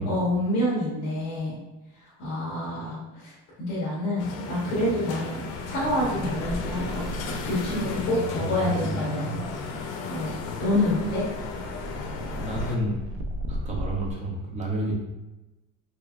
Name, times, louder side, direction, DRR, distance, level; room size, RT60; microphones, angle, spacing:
voice 1, 0.0-1.6 2.2-3.3 3.7-9.3 10.1-11.2, left 1 dB, 50° left, -7 dB, 1.1 m, -27 dB
sound 1, 4.2-12.8, left 4 dB, 80° left, 0.6 m, -34 dB
sound 2, 5.4-14.1, equal, 65° right, 0.5 m, -37 dB
voice 2, 8.3-9.4 12.3-13.0 13.5-14.9, right 1 dB, 25° right, -3 dB, 0.6 m, -30 dB
3.4 x 3.2 x 2.4 m, 1.0 s
cardioid pair, 175°, 31 cm